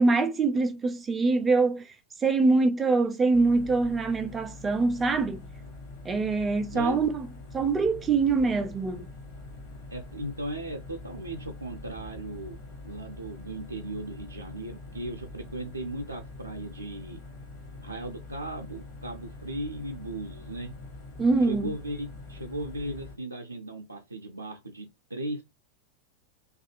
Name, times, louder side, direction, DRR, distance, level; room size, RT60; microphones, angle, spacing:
voice 1, 0.0-1.8 2.2-5.4 6.0-7.3 7.5-9.1 21.2-21.7, right 3 dB, 15° right, 0.4 m, -24 dB
sound 1, 3.3-23.2, left 2 dB, 45° left, 0.9 m, -44 dB
voice 2, 9.9-12.6 12.8-17.2 17.8-20.7 21.5-25.4, right 1 dB, 80° right, 0.4 m, -37 dB
2.6 x 2.3 x 2.5 m
figure-of-eight pair, 90°, 0 cm